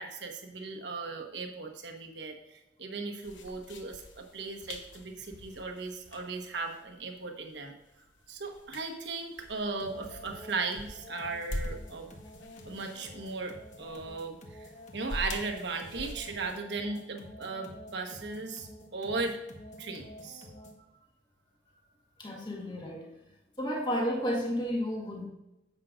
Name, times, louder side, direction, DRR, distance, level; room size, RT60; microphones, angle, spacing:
voice 1, 0.0-7.7 8.3-12.1 12.6-19.4 19.8-20.5, right 3 dB, 65° right, 3 dB, 1.2 m, -37 dB
sound 1, 3.2-16.5, left 1 dB, 80° left, 1.0 m, -45 dB
sound 2, 9.8-20.9, left 1 dB, 40° left, 1.2 m, -50 dB
voice 2, 22.2-23.1 23.6-25.3, equal, 25° left, -1 dB, 1.6 m, -32 dB
10.0 x 7.6 x 2.5 m, 0.94 s
head